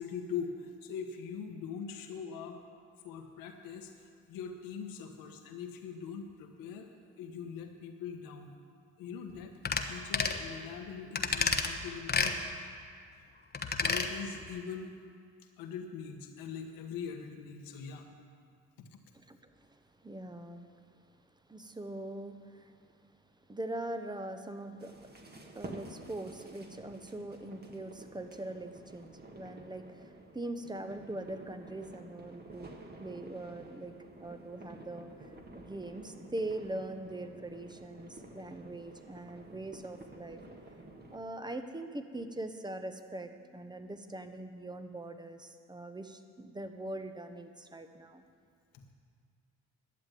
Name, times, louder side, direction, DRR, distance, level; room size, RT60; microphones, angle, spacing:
voice 1, 0.0-2.6 3.0-6.9 7.2-8.5 9.0-9.5 9.9-12.4 13.8-14.9 15.6-18.1 18.8-19.0 48.7-48.8, left 6 dB, 80° left, 4 dB, 1.5 m, -42 dB
sound 1, 9.6-9.9 10.1-10.4 11.2-11.7 12.1-12.3 13.5-14.1 14.4-14.5, left 5 dB, 30° left, 1.1 m, -30 dB
voice 2, 19.3-20.7 21.5-22.7 23.5-25.0 25.5-32.7 33.0-33.9 34.2-35.1 35.5-40.4 41.1-48.2, right 1 dB, 15° right, 8 dB, 1.1 m, -42 dB
sound 2, 24.8-41.2, right 2 dB, 30° right, 1.8 m, -51 dB
11.5 x 7.5 x 9.2 m, 2.1 s
supercardioid pair, 70°, 33 cm